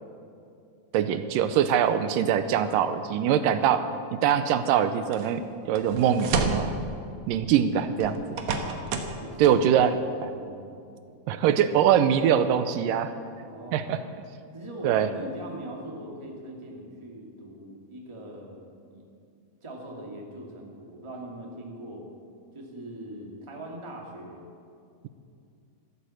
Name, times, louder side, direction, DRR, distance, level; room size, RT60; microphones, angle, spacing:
voice 1, 0.9-3.8 4.1-6.7 7.3-8.2 9.4-9.9 10.2-10.3 11.3-13.1 13.7-14.0 14.8-15.1, right 9 dB, 80° right, 10 dB, 2.1 m, -23 dB
sound 1, 5.1-5.3 5.8-6.7 8.0-9.2 9.4-9.5, right 4 dB, 60° right, 1.9 m, -29 dB
voice 2, 8.7-9.6 10.3-10.6 13.4-13.8 14.5-19.0 19.6-22.0 22.5-24.4, right 1 dB, 10° right, -1 dB, 1.5 m, -41 dB
13.5 x 13.0 x 7.8 m, 2.5 s
omnidirectional pair, 4.2 m